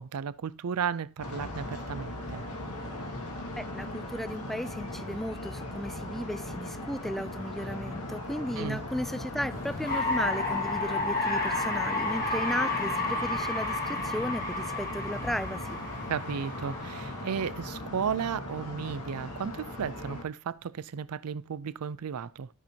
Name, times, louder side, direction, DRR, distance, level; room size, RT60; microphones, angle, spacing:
voice 1, 0.0-2.4 8.6-8.8 16.1-22.5, right 7 dB, 75° right, 0.5 m, -34 dB
sound 1, 1.2-20.2, left 1 dB, 85° left, 1.9 m, -39 dB
voice 2, 3.6-15.8, equal, ahead, 0.3 m, -35 dB
sound 2, 9.5-17.5, left 2 dB, 40° left, 2.0 m, -31 dB
13.0 x 4.4 x 2.8 m
head